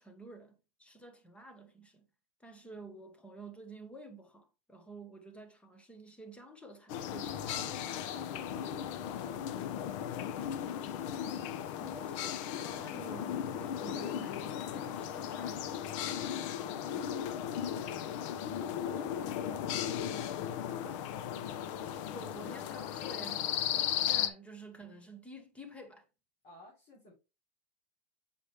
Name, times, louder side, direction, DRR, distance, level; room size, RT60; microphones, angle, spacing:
voice 1, 0.0-2.1 2.4-7.7 11.8-16.0 20.8-21.1 21.7-26.1, right 2 dB, 5° left, 1.1 m, -50 dB
sound 1, 6.9-24.3, left 9 dB, 50° left, 0.8 m, -36 dB
voice 2, 7.3-11.3 26.4-27.1, left 2 dB, 30° left, 3.4 m, -56 dB
7.5 x 5.0 x 3.2 m
supercardioid pair, 150°, 21 cm